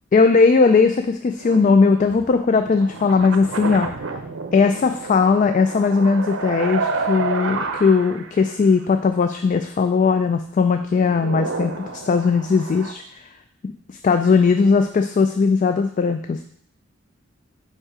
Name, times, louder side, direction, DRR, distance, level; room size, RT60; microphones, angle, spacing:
voice 1, 0.1-3.9 4.5-13.0 13.6-13.7 14.0-16.5, left 4 dB, 40° left, 8 dB, 0.3 m, -18 dB
sound 1, 1.4-8.4 8.8-8.9 10.7-12.9, right 3 dB, 70° right, 0.6 m, -30 dB
5.3 x 4.8 x 4.9 m, 0.65 s
head